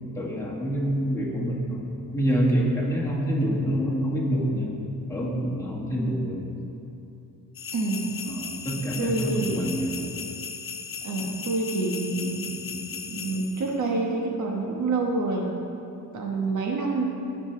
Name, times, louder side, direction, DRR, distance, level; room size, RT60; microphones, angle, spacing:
voice 1, 0.0-4.7 5.1-6.5 8.3-10.0 12.7-12.8, equal, 10° left, -5 dB, 1.7 m, -27 dB
sound 1, 7.6-13.7, left 6 dB, 40° left, 0.7 m, -37 dB
voice 2, 7.7-8.2 9.0-9.7 11.0-12.6 13.1-15.5 16.1-17.0, right 3 dB, 60° right, 0 dB, 1.3 m, -27 dB
17.5 x 6.0 x 3.3 m, 2.8 s
cardioid pair, 130°, 33 cm